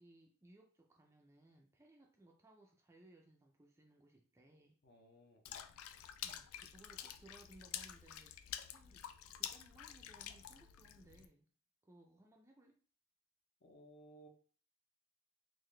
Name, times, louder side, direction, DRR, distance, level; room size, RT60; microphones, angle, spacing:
voice 1, 0.0-4.8 6.2-11.5 11.8-12.8, right 1 dB, 15° right, 1 dB, 0.3 m, -64 dB
voice 2, 4.8-5.7 13.6-14.3, right 1 dB, 50° left, 2 dB, 0.7 m, -61 dB
Water / Splash splatter, 5.5-11.3, left 10 dB, 75° left, 0.3 m, -48 dB
3.8 x 2.6 x 3.1 m, 0.42 s
head